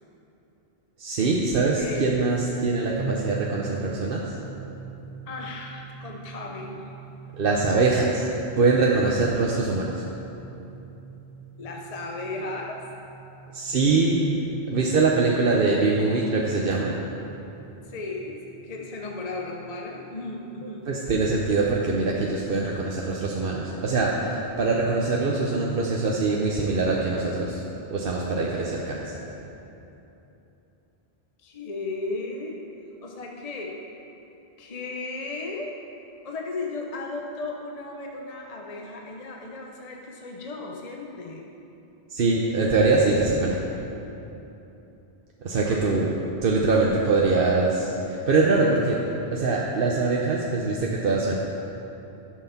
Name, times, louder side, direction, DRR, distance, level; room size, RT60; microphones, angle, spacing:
voice 1, 1.0-4.4 7.4-8.3 8.6-10.0 13.5-14.2 14.7-16.9 20.9-27.6 27.9-29.1 42.1-43.6 45.4-46.1 46.4-49.0 49.3-51.4, right 3 dB, 60° right, -2 dB, 1.0 m, -23 dB
voice 2, 1.8-2.3 5.3-6.9 11.6-12.8 17.8-20.9 31.4-32.6 33.0-33.8 34.6-35.8 36.2-41.5 45.6-45.8, left 3 dB, 40° left, 0 dB, 0.8 m, -35 dB
sound 1, 3.0-21.7, right 6 dB, 40° right, 0.5 m, -44 dB
11.5 x 6.5 x 5.7 m, 3.0 s
omnidirectional pair, 1.0 m